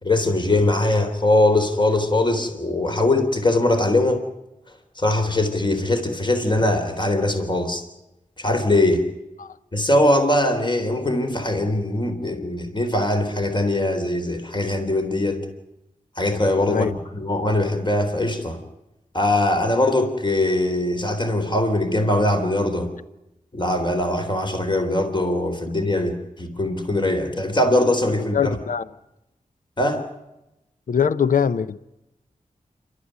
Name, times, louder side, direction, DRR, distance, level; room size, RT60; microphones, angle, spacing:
voice 1, 0.0-4.2 5.0-7.8 8.4-9.0 9.7-15.4 16.2-18.6 19.1-22.9 23.5-28.6 29.8-30.0, left 1 dB, 35° left, 3.7 m, -21 dB
voice 2, 28.3-28.9 30.9-31.8, left 7 dB, 70° left, 0.7 m, -22 dB
27.0 x 13.0 x 10.0 m
cardioid pair, 45°, 14 cm